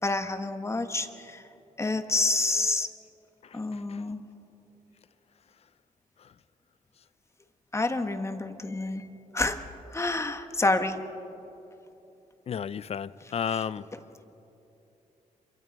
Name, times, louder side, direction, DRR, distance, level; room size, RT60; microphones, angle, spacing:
voice 1, 0.0-1.4 1.8-2.9 3.5-4.2 7.7-9.1 9.3-9.6 9.9-11.0, left 2 dB, 20° left, 7 dB, 1.4 m, -28 dB
voice 2, 3.4-4.0 6.2-6.3 12.5-13.9, left 7 dB, 45° left, 17 dB, 0.6 m, -33 dB
27.5 x 24.0 x 5.4 m, 2.9 s
cardioid pair, 115°, 14 cm